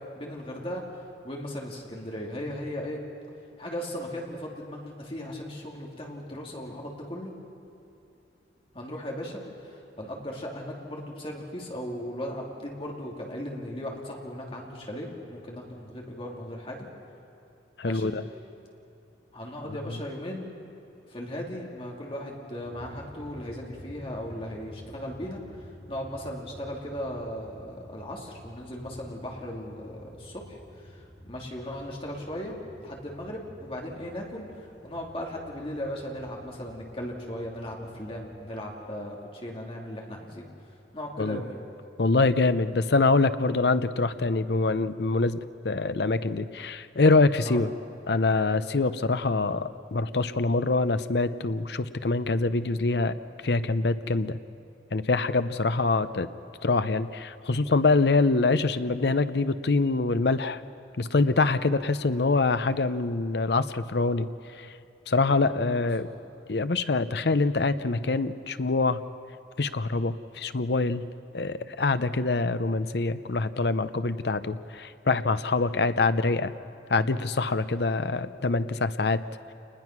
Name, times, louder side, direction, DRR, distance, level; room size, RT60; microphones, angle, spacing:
voice 1, 0.1-0.8 1.2-3.0 3.6-7.3 8.7-16.9 17.8-18.1 19.3-20.5 21.1-25.4 25.9-40.5 40.9-41.6 47.4-47.6 66.0-66.2, equal, 30° left, -1 dB, 3.0 m, -37 dB
voice 2, 17.8-18.2 19.6-19.8 41.2-41.4 42.0-45.4 45.6-47.7 48.1-53.1 53.4-54.4 54.9-56.3 56.6-60.6 61.0-64.3 64.6-64.7 65.1-66.1 66.5-69.0 69.6-71.0 71.3-76.5 76.9-79.2, left 3 dB, 60° left, 12 dB, 0.7 m, -25 dB
sound 1, 22.6-38.6, equal, 5° right, 7.0 m, -50 dB
28.5 x 20.5 x 6.1 m, 2.7 s
head